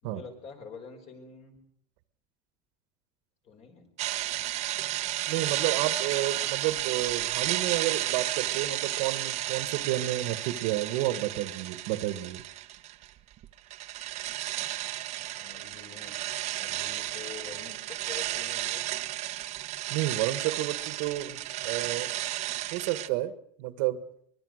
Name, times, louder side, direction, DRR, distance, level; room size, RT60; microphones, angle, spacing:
voice 1, 0.0-1.6 3.4-3.9 15.3-16.2 16.5-18.8, left 6 dB, 40° left, 5 dB, 5.0 m, -46 dB
sound 1, 4.0-13.1 13.4-23.1, right 15 dB, 40° right, 1.1 m, -33 dB
voice 2, 5.3-12.4 19.9-22.1 22.7-23.3 23.6-24.0, right 14 dB, 65° right, 13 dB, 1.6 m, -30 dB
23.5 x 21.5 x 6.5 m, 0.66 s
cardioid pair, 160°, 17 cm